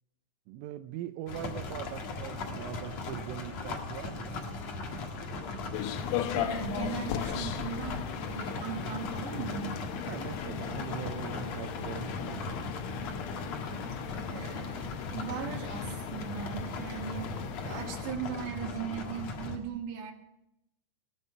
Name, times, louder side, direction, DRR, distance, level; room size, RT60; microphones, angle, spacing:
voice 1, 0.5-4.4 10.1-12.6, right 12 dB, 90° right, 8 dB, 3.3 m, -41 dB
sound 1, 1.3-19.6, left 3 dB, 60° left, 1.7 m, -38 dB
sound 2, 5.7-18.0, left 10 dB, 85° left, 3.5 m, -38 dB
voice 2, 6.4-9.7 14.3-17.3 17.6-20.1, right 8 dB, 65° right, 2 dB, 4.1 m, -38 dB
20.0 x 11.0 x 5.4 m, 0.82 s
omnidirectional pair, 5.6 m